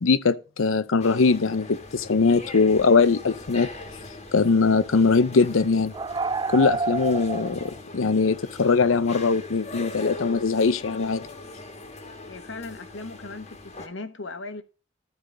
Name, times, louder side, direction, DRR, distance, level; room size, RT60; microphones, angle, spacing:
voice 1, 0.0-3.7 4.3-5.9 6.5-11.3, left 4 dB, 80° left, 0.6 m, -21 dB
sound 1, 1.0-13.9, left 2 dB, 35° left, 1.4 m, -40 dB
sound 2, 2.3-2.4 2.8-3.0 3.9-4.1 4.5-7.8, right 3 dB, 20° right, 0.3 m, -30 dB
voice 2, 12.3-14.6, left 3 dB, 65° left, 1.1 m, -38 dB
13.5 x 4.9 x 3.8 m
head